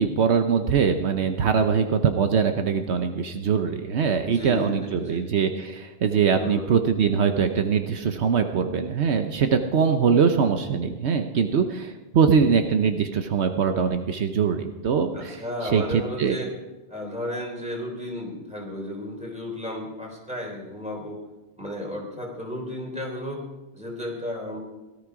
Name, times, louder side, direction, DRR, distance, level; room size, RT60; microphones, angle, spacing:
voice 1, 0.0-16.4, right 6 dB, 75° right, 7 dB, 1.1 m, -22 dB
voice 2, 4.2-5.2 6.3-6.7 15.1-16.5 16.9-21.2 21.6-23.4 23.7-24.6, left 1 dB, 5° right, -1 dB, 3.7 m, -33 dB
17.5 x 13.0 x 4.8 m, 1.1 s
omnidirectional pair, 1.1 m